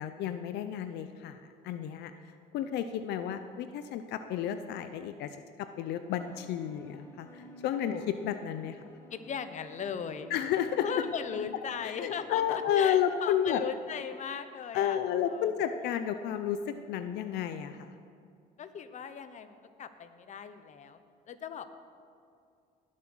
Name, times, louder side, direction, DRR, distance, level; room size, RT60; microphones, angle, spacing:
voice 1, 0.0-1.4 1.6-2.1 2.5-5.3 5.6-8.8 10.3-10.8 11.8-13.6 14.7-17.9, left 9 dB, 80° left, 10 dB, 0.7 m, -31 dB
sound 1, 6.1-12.8, left 2 dB, 15° left, 1.4 m, -52 dB
voice 2, 9.1-10.3 10.8-15.0 15.2-15.5 18.6-21.0 21.3-21.7, left 7 dB, 45° left, 11 dB, 0.9 m, -38 dB
19.5 x 7.6 x 6.2 m, 2.4 s
cardioid pair, 110°, 17 cm